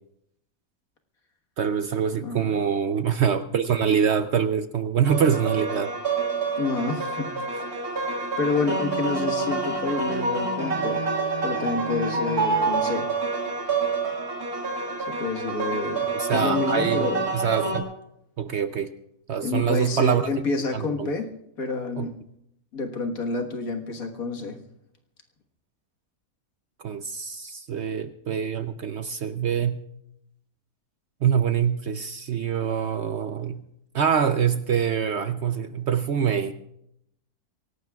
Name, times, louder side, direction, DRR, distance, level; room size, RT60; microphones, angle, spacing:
voice 1, 1.6-5.9 16.1-17.9 18.4-18.9 19.3-20.3 20.7-21.1 22.0-22.1 26.8-29.8 31.2-33.6 33.9-36.5, right 7 dB, 60° right, 10 dB, 0.8 m, -25 dB
voice 2, 2.2-2.5 6.6-7.6 8.4-11.0 11.4-13.1 15.1-17.3 19.4-21.3 21.6-22.2 22.7-24.6, left 3 dB, 70° left, 3 dB, 1.9 m, -29 dB
sound 1, 5.0-17.8, right 3 dB, 75° right, 2.4 m, -27 dB
24.0 x 18.0 x 2.3 m, 0.79 s
omnidirectional pair, 1.6 m